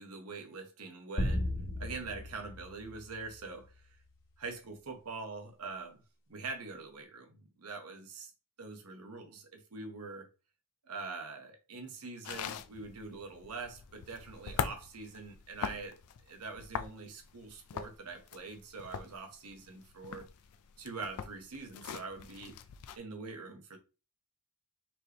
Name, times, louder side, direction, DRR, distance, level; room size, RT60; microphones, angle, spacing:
voice 1, 0.0-1.5 1.8-4.0 4.4-6.0 6.3-8.3 8.6-10.3 10.8-16.0 16.3-20.3 20.8-22.6 23.0-23.8, right 4 dB, 90° right, 1.0 m, -44 dB
sound 1, 1.2-3.8, left 1 dB, 55° left, 1.6 m, -36 dB
sound 2, 12.2-23.0, left 7 dB, 85° left, 0.4 m, -42 dB
4.3 x 3.3 x 2.9 m
head